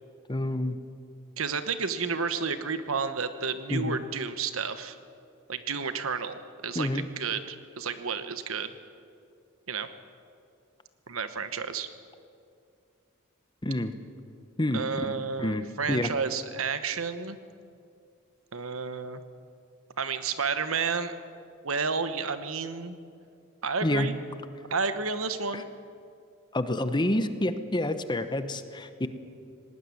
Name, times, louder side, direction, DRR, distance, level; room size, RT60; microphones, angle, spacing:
voice 1, 0.3-0.8 3.7-4.0 6.7-7.1 13.6-13.9 14.6-16.1 23.8-24.1 25.5-25.6 26.5-29.1, left 1 dB, 20° left, 10 dB, 1.0 m, -28 dB
voice 2, 1.4-5.0 5.5-8.7 9.7-9.9 11.1-11.9 14.7-17.4 18.5-19.2 20.0-21.1 21.6-23.0 23.6-24.2 24.7-25.7, right 5 dB, 80° right, 11 dB, 1.2 m, -31 dB
18.5 x 18.5 x 9.7 m, 2.4 s
head